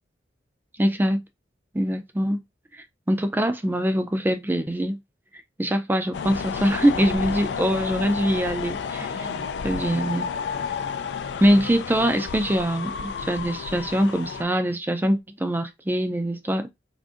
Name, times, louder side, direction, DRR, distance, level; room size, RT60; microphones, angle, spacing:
voice 1, 0.8-1.2 1.7-2.4 3.1-5.0 5.6-10.3 11.4-16.7, equal, 10° right, 0.3 m, -23 dB
sound 1, 6.1-14.4, left 6 dB, 65° left, 0.3 m, -31 dB
3.6 x 2.6 x 2.5 m
head